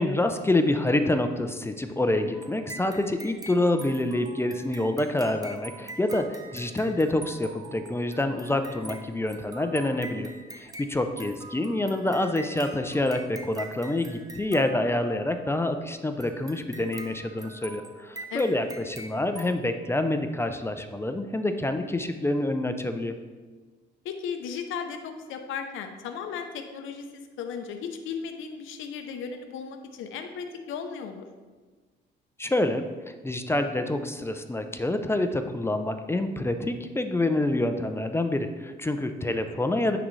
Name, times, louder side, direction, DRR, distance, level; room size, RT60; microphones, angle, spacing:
voice 1, 0.0-23.1 32.4-32.8 33.2-40.0, left 1 dB, 10° left, 7 dB, 0.4 m, -27 dB
sound 1, 2.3-15.4 16.2-19.5, right 2 dB, 20° right, 0.8 m, -44 dB
voice 2, 24.0-27.1 27.4-31.3, left 6 dB, 85° left, 6 dB, 0.6 m, -35 dB
9.6 x 3.9 x 3.2 m, 1.4 s
cardioid pair, 90°, 20 cm